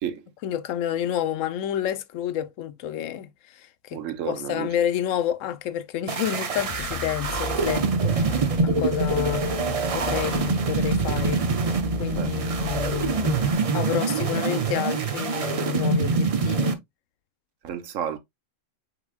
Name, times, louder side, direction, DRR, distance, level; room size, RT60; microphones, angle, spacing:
voice 1, 0.4-4.0 4.3-9.4 9.9-11.4 12.0-16.8, left 11 dB, 85° left, 1.0 m, -29 dB
voice 2, 3.9-4.7 12.0-12.3 17.6-18.2, right 9 dB, 85° right, 1.1 m, -31 dB
sound 1, 6.1-16.7, right 4 dB, 45° right, 0.5 m, -25 dB
sound 2, 6.5-13.5, left 5 dB, 55° left, 0.4 m, -35 dB
5.9 x 4.0 x 2.3 m
omnidirectional pair, 1.3 m